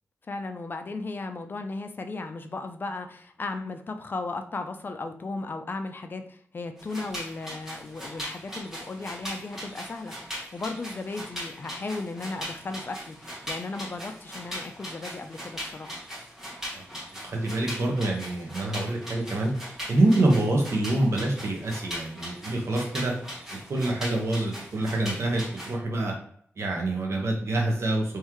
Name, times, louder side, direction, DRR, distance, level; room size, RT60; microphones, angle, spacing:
voice 1, 0.3-10.1 10.5-16.0, left 3 dB, 45° left, 7 dB, 0.5 m, -35 dB
sound 1, 6.8-25.8, equal, 10° right, 1.6 m, -39 dB
voice 2, 17.2-19.5 19.9-23.1 23.7-26.1 26.6-28.2, right 2 dB, 65° right, 0 dB, 1.1 m, -26 dB
3.7 x 3.1 x 3.0 m, 0.63 s
wide cardioid pair, 95°, 5 cm